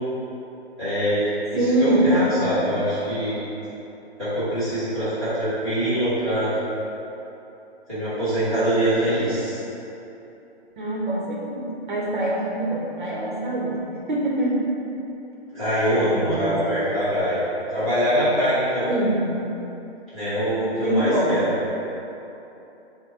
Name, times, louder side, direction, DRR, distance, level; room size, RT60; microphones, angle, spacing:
voice 1, 0.8-1.3 1.8-3.4 4.2-6.5 7.9-9.6 15.5-17.4 17.7-18.9 20.1-21.4, equal, ahead, -23 dB, 0.7 m, -23 dB
voice 2, 1.5-2.8 10.8-14.6 16.0-16.6 18.9-19.3 20.8-21.4, right 1 dB, 50° right, -4 dB, 0.8 m, -24 dB
4.2 x 2.1 x 4.5 m, 3.0 s
hypercardioid pair, 170°, 33 cm